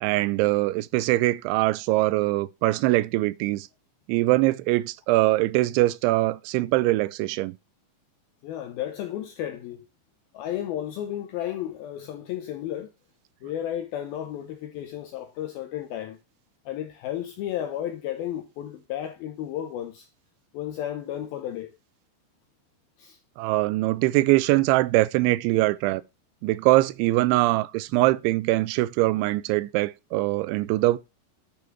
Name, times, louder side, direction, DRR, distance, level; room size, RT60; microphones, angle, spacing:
voice 1, 0.0-3.7 4.1-7.6 23.4-26.0 26.4-31.0, right 19 dB, 85° right, 3.0 m, -22 dB
voice 2, 8.4-9.8 10.3-12.9 13.4-16.2 16.7-20.1 20.5-21.7 23.0-23.2, left 11 dB, 85° left, 2.1 m, -33 dB
10.5 x 5.4 x 4.5 m
omnidirectional pair, 5.3 m